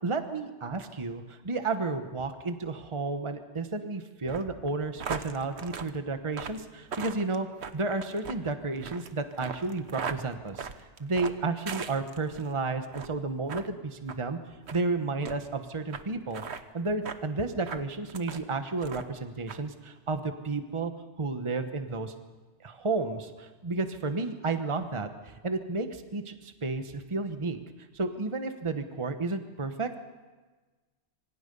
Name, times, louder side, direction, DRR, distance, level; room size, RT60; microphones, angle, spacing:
voice 1, 0.0-7.5 7.7-10.7 11.0-14.4 14.7-16.4 16.7-20.9 21.2-22.1 22.6-27.6 27.9-29.9, right 3 dB, 25° right, 7 dB, 1.2 m, -32 dB
sound 1, 4.2-12.5 12.9-13.2 13.5-13.7 14.1-14.2 14.7-14.8 15.2-15.4 15.9-16.0 16.3-16.6 17.1-17.2 17.6-18.5 18.8-19.2 19.5-19.6, right 6 dB, 65° right, 1.3 m, -39 dB
26.0 x 25.0 x 5.5 m, 1.3 s
omnidirectional pair, 1.2 m